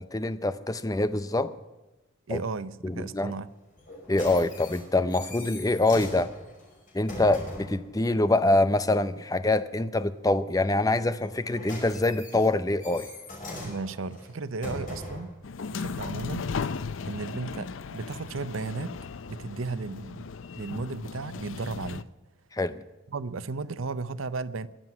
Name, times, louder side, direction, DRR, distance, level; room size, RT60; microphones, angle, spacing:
voice 1, 0.0-1.5 2.3-2.4 2.8-3.3 4.1-6.3 6.9-13.1 22.5-22.8, left 2 dB, 20° left, 12 dB, 0.6 m, -25 dB
voice 2, 2.3-3.5 13.6-15.3 15.7-16.6 17.0-19.0 19.3-20.3 20.6-22.1 23.1-24.7, right 4 dB, 90° right, 14 dB, 0.7 m, -35 dB
sound 1, 3.8-7.8 11.2-15.4 16.1-16.2, left 1 dB, 45° left, 5.5 m, -40 dB
sound 2, 15.4-22.0, left 5 dB, 75° left, 0.5 m, -36 dB
22.0 x 7.7 x 6.0 m, 1.1 s
head